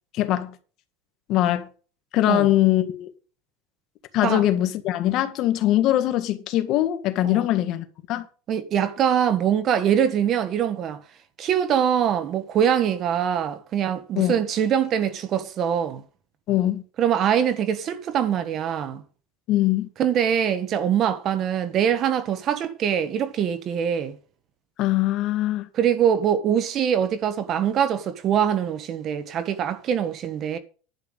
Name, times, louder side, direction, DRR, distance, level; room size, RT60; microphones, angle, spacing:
voice 1, 0.1-0.6 1.3-1.7 2.1-3.1 4.1-8.3 14.2-14.4 16.5-16.8 19.5-19.9 24.8-25.7, left 14 dB, 50° left, 1.8 m, -22 dB
voice 2, 8.5-11.0 11.4-16.0 17.0-19.0 20.0-24.2 25.7-30.6, right 9 dB, 40° right, 1.3 m, -23 dB
11.0 x 5.8 x 8.1 m
supercardioid pair, 130°, 0 cm